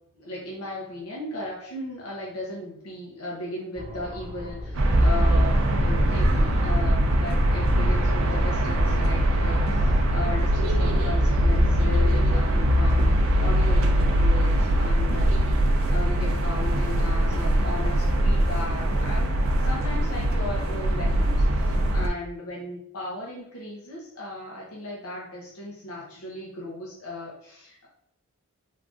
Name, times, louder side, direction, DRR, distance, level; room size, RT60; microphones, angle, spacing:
voice 1, 0.2-15.3 15.9-19.4 19.6-27.9, left 1 dB, 75° left, -4 dB, 0.7 m, -36 dB
sound 1, 3.8-12.9, equal, 25° right, 0.8 m, -38 dB
sound 2, 4.7-22.1, right 1 dB, 65° right, 0.5 m, -22 dB
3.7 x 2.5 x 2.4 m, 0.68 s
head